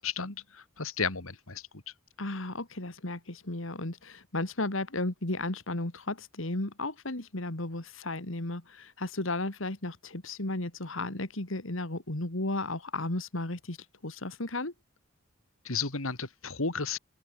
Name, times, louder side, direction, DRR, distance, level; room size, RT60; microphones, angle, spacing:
voice 1, 0.0-1.6 15.6-17.0, left 5 dB, 85° left, 2.8 m, -33 dB
voice 2, 2.2-13.8 14.0-14.7, left 2 dB, 70° left, 2.5 m, -34 dB
open air
head